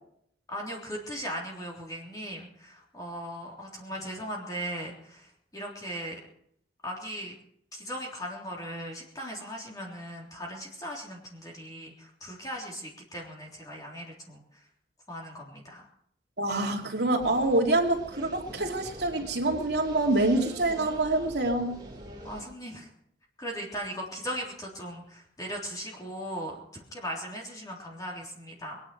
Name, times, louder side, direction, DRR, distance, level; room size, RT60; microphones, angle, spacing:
voice 1, 0.5-6.2 6.8-7.3 7.7-14.7 15.1-15.9 22.2-22.9 23.4-28.8, equal, 20° left, -2 dB, 3.5 m, -38 dB
voice 2, 16.4-21.8, right 2 dB, 65° right, 1 dB, 2.6 m, -26 dB
sound 1, 17.2-22.4, right 1 dB, 20° right, 3.6 m, -44 dB
21.5 x 9.9 x 5.9 m, 0.70 s
head